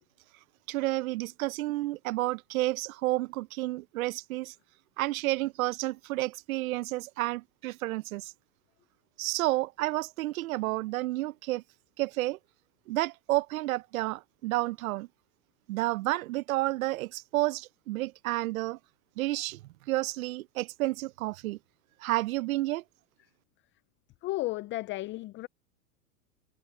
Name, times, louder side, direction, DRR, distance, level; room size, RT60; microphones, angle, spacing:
voice 1, 0.7-4.5 5.0-8.3 9.2-11.6 12.0-12.4 12.9-15.1 15.7-18.8 19.2-19.6 19.9-21.6 22.0-22.8, right 18 dB, 65° right, 0.8 m, -30 dB
voice 2, 24.2-25.5, left 18 dB, 25° left, 0.6 m, -33 dB
hypercardioid pair, 115°, 46 cm